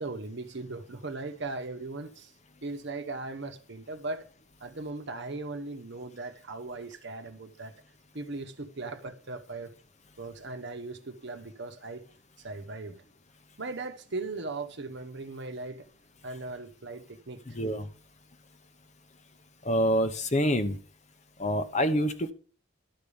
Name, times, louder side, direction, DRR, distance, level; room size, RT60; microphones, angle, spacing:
voice 1, 0.0-2.3 2.6-4.3 4.6-7.7 8.1-9.7 10.2-12.0 12.4-13.0 13.6-15.9 16.2-17.6, right 3 dB, 60° right, 1.0 m, -38 dB
voice 2, 17.5-17.9 19.6-20.8 21.4-22.3, equal, 35° left, 0.9 m, -26 dB
12.0 x 5.0 x 7.0 m
head